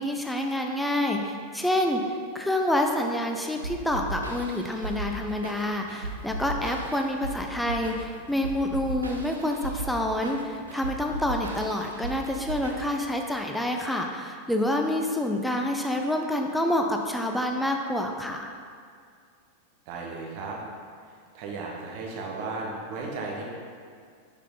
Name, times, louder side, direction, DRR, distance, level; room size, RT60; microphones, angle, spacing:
voice 1, 0.0-18.5, left 1 dB, 5° left, 2 dB, 0.6 m, -28 dB
sound 1, 3.6-13.2, right 2 dB, 75° right, 0.8 m, -36 dB
voice 2, 19.9-20.6 21.3-23.5, right 3 dB, 45° right, -1 dB, 1.3 m, -35 dB
6.2 x 5.9 x 4.0 m, 2.2 s
figure-of-eight pair, 90°, 0 cm